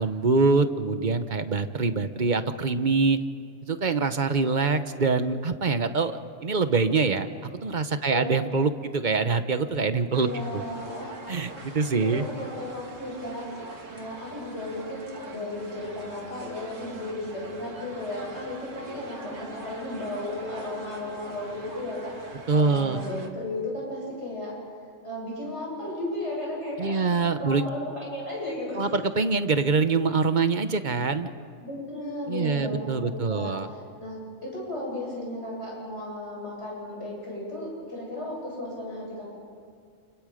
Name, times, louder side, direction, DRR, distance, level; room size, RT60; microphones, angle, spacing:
voice 1, 0.0-3.2 3.7-7.3 7.6-10.3 10.5-10.6 11.3-12.3 22.5-23.0 26.8-27.7 28.7-31.3 32.3-33.7, right 4 dB, 40° right, 9 dB, 1.1 m, -24 dB
sound 1, 10.1-23.3, right 2 dB, 80° right, 2.5 m, -43 dB
voice 2, 10.2-11.2 11.6-13.4 13.9-24.5 25.0-27.1 27.4-28.9 31.6-39.3, left 1 dB, 60° left, -5 dB, 8.3 m, -35 dB
29.5 x 29.5 x 5.1 m, 2.2 s
omnidirectional pair, 1.3 m